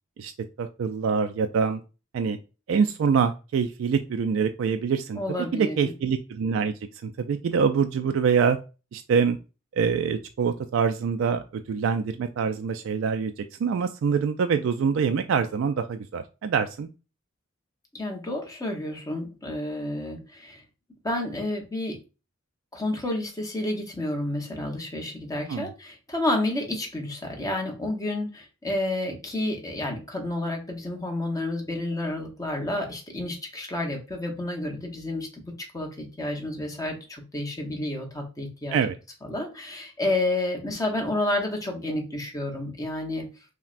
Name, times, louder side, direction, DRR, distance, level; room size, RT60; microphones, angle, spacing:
voice 1, 0.6-1.8 2.1-2.4 2.7-5.2 5.5-6.7 7.0-8.6 8.9-9.4 9.7-16.9 25.5-25.7 38.7-38.9, right 6 dB, 80° right, 7 dB, 0.3 m, -25 dB
voice 2, 5.2-5.9 17.9-20.6 21.0-22.0 22.7-38.8 39.3-43.3, left 1 dB, 20° left, 1 dB, 0.9 m, -30 dB
5.7 x 2.2 x 2.4 m, 0.31 s
head